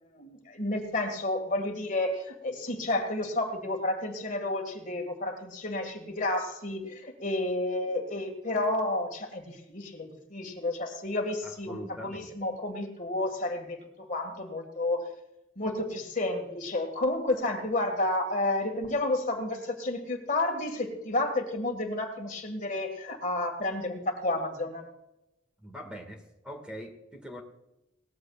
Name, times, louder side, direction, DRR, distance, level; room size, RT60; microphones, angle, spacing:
voice 1, 0.0-15.1 15.6-24.9, left 2 dB, 40° left, 4 dB, 1.9 m, -31 dB
voice 2, 11.4-12.3 25.6-27.4, equal, 5° right, 2 dB, 1.9 m, -43 dB
19.0 x 14.5 x 2.4 m, 0.89 s
head